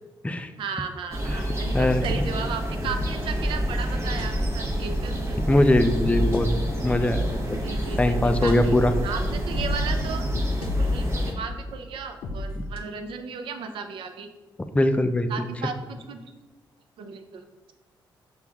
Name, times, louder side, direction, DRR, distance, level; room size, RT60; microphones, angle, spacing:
voice 1, 0.6-5.4 7.6-8.8 9.0-10.3 10.6-14.3 15.3-16.2 17.0-17.7, right 5 dB, 80° right, 7 dB, 0.4 m, -35 dB
sound 1, 1.1-11.3, equal, 30° right, 1.0 m, -28 dB
voice 2, 1.7-2.0 5.5-6.5 6.8-7.6 8.0-8.9 12.6-12.7 14.7-15.3, left 1 dB, 15° left, 8 dB, 0.4 m, -21 dB
sound 2, 2.0-12.8, left 2 dB, 80° left, 0.5 m, -34 dB
5.9 x 2.3 x 3.5 m, 1.2 s
cardioid pair, 70°, 9 cm